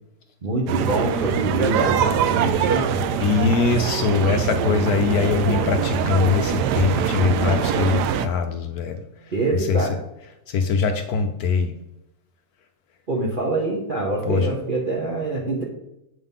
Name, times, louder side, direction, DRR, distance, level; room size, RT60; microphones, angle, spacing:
voice 1, 0.4-2.9 9.3-9.9 13.1-15.6, right 2 dB, 35° right, -3 dB, 1.0 m, -25 dB
sound 1, 0.7-8.3, right 7 dB, 75° right, 1.1 m, -23 dB
voice 2, 3.2-9.0 9.5-9.9 10.5-11.8 14.2-14.5, left 5 dB, 70° left, 6 dB, 1.0 m, -22 dB
8.0 x 3.8 x 5.4 m, 0.87 s
omnidirectional pair, 1.9 m